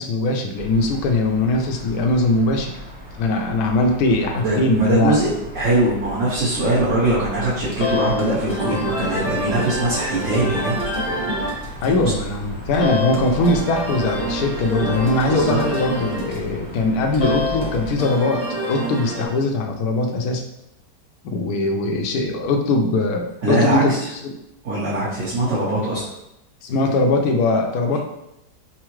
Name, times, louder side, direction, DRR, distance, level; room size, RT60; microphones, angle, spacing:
voice 1, 0.0-2.7 3.2-5.2 11.8-18.4 18.7-20.4 21.2-24.0 24.2-24.3 26.6-28.0, left 2 dB, 70° left, 3 dB, 1.0 m, -21 dB
sound 1, 0.5-17.9, left 1 dB, 10° right, 0.6 m, -36 dB
voice 2, 4.3-11.2 11.8-12.1 15.2-15.6 23.4-24.1 24.6-26.1 27.9-28.0, right 1 dB, 50° right, -9 dB, 1.2 m, -22 dB
sound 2, 7.7-19.3, left 1 dB, 25° left, 0.7 m, -27 dB
5.6 x 2.0 x 3.0 m, 0.85 s
omnidirectional pair, 1.9 m